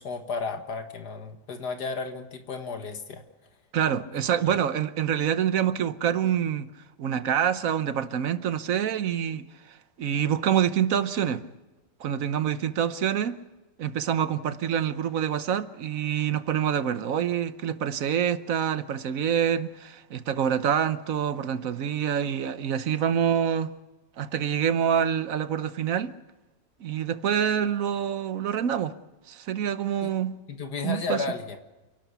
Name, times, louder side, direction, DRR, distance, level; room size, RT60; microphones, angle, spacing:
voice 1, 0.0-3.2 4.4-4.6 30.0-30.1 30.5-31.6, left 4 dB, 70° left, 2.1 m, -33 dB
voice 2, 3.7-6.7 7.0-11.4 12.0-13.4 13.8-23.7 24.2-26.1 26.8-28.9 29.3-30.3 30.8-31.2, right 9 dB, 60° right, 1.2 m, -26 dB
29.0 x 12.0 x 8.2 m
omnidirectional pair, 1.8 m